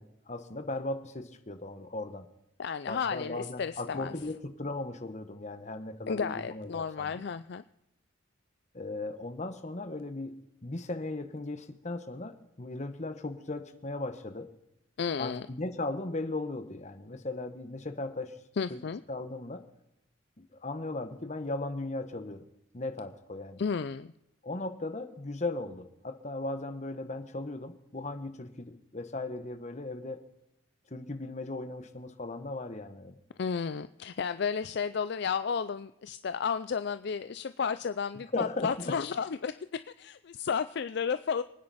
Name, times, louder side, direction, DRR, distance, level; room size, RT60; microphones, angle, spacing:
voice 1, 0.0-2.3 2.9-7.1 8.7-14.5 15.2-18.3 18.7-18.8 19.1-19.7 20.4-22.4 22.7-23.6 24.4-30.2 30.9-33.2 38.3-39.0, left 2 dB, 35° left, 9 dB, 1.1 m, -37 dB
voice 2, 2.6-4.1 6.1-7.6 15.0-15.5 18.6-19.0 23.6-24.1 33.4-39.5 40.0-41.4, left 6 dB, 55° left, 12 dB, 0.4 m, -32 dB
25.5 x 9.6 x 4.2 m, 0.85 s
head